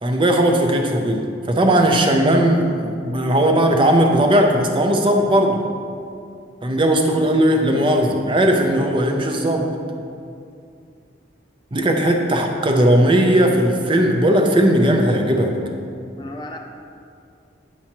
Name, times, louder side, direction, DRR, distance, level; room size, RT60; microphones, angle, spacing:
voice 1, 0.0-5.6 6.6-9.7 11.7-15.6, right 1 dB, 25° right, 3 dB, 0.5 m, -17 dB
voice 2, 16.1-16.6, left 1 dB, 25° left, 3 dB, 0.4 m, -35 dB
8.7 x 7.0 x 3.0 m, 2.4 s
head